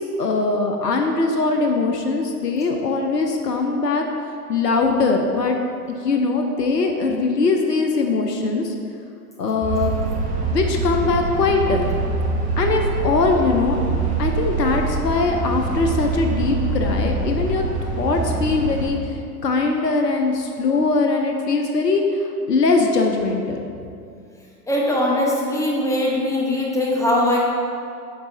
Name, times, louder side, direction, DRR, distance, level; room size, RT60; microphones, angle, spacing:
voice 1, 0.0-4.0 4.5-5.6 6.0-8.7 9.4-10.0 10.5-12.0 12.6-13.8 14.2-17.6 18.0-23.7, left 3 dB, 85° left, 3 dB, 0.8 m, -21 dB
sound 1, 9.6-18.9, right 3 dB, 15° right, 1.4 m, -24 dB
voice 2, 24.7-27.4, left 1 dB, 5° left, -3 dB, 0.9 m, -21 dB
7.9 x 4.1 x 3.8 m, 2.5 s
figure-of-eight pair, 105°, 47 cm